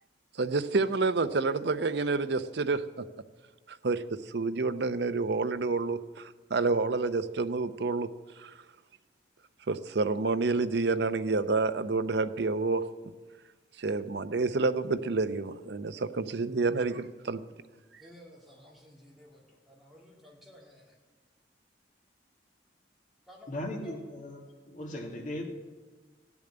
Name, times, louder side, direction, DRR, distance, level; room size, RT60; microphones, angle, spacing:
voice 1, 0.3-3.0 3.7-8.1 8.4-8.6 9.7-12.9 13.8-17.4, right 3 dB, 65° right, 11 dB, 0.7 m, -29 dB
voice 2, 18.0-21.0 23.3-24.0, left 1 dB, ahead, -4 dB, 3.0 m, -54 dB
voice 3, 23.5-24.4 24.7-25.4, left 1 dB, 45° left, 1 dB, 2.2 m, -37 dB
16.0 x 7.1 x 9.7 m, 1.3 s
head